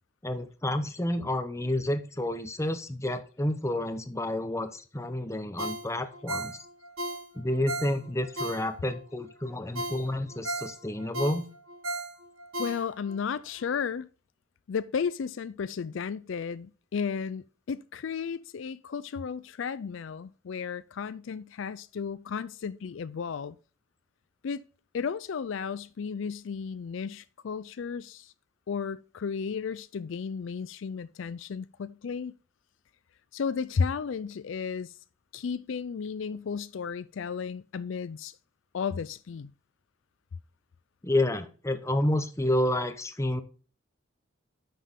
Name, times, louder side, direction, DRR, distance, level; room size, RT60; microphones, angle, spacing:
voice 1, 0.2-6.6 7.3-11.5 41.0-43.4, left 1 dB, 15° left, 0.8 m, -29 dB
Ringtone, 5.6-9.0 9.4-9.5 9.8-13.2 13.6-13.7, right 1 dB, 80° right, 1.6 m, -36 dB
voice 2, 12.6-14.1 14.7-23.6 24.4-24.6 24.9-28.3 28.7-32.3 33.3-34.9 35.3-38.4 38.7-39.5, left 6 dB, 65° left, 0.4 m, -34 dB
9.4 x 6.1 x 3.6 m
head